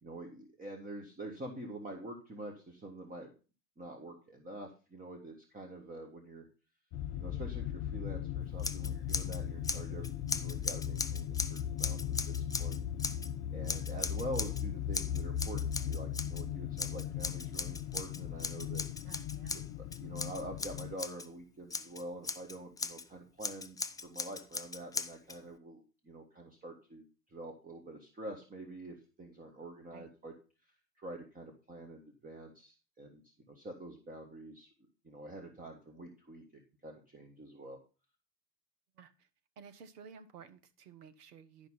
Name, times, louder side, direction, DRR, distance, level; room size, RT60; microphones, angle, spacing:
voice 1, 0.0-3.3 3.8-6.5 7.1-12.8 13.5-18.8 20.0-30.3 30.6-34.7 35.0-36.4 36.8-37.8, right 1 dB, 15° right, 3 dB, 1.8 m, -46 dB
sound 1, 6.9-21.0, left 10 dB, 55° left, 0.7 m, -38 dB
Scissors, 8.6-9.4 9.6-13.3 13.7-14.6 14.9-16.4 16.8-21.3 21.7-23.0 23.4-25.4, left 4 dB, 10° left, 0.4 m, -39 dB
voice 2, 19.0-19.6 29.9-30.1 38.9-39.3 39.6-41.7, right 6 dB, 70° right, 11 dB, 1.3 m, -54 dB
11.5 x 5.2 x 5.7 m, 0.34 s
hypercardioid pair, 85°, 48 cm